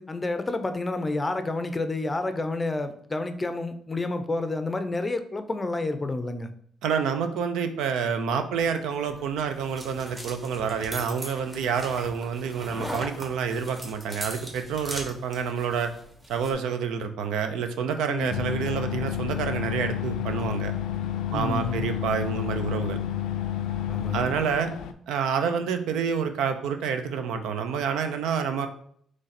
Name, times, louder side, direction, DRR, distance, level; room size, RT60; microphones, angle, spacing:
voice 1, 0.0-6.5 18.1-18.3 21.3-21.9 23.9-24.3, left 2 dB, 20° left, 9 dB, 0.5 m, -29 dB
voice 2, 6.8-15.9 16.3-20.7 21.3-23.0 24.1-24.7 25.1-28.7, right 6 dB, 90° right, 8 dB, 0.5 m, -28 dB
sound 1, 9.1-16.5, right 1 dB, 25° right, 1.4 m, -40 dB
sound 2, 18.3-24.9, left 10 dB, 90° left, 0.3 m, -30 dB
3.9 x 3.2 x 4.1 m, 0.64 s
cardioid pair, 90°, 0 cm